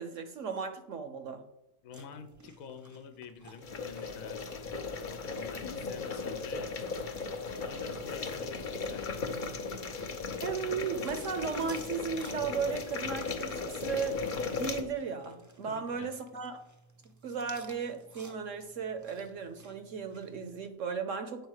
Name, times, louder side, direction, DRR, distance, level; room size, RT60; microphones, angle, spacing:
voice 1, 0.0-1.4 10.4-14.2 14.5-16.6 17.2-21.5, right 6 dB, 60° right, 8 dB, 1.0 m, -36 dB
voice 2, 1.8-4.5 5.0-6.7 7.6-9.2 15.6-16.1, left 6 dB, 70° left, 9 dB, 1.2 m, -48 dB
sound 1, 1.9-20.7, right 2 dB, 20° right, 0.4 m, -57 dB
sound 2, 3.6-14.8, left 4 dB, 45° left, 0.7 m, -37 dB
8.8 x 4.1 x 6.4 m, 0.87 s
omnidirectional pair, 1.6 m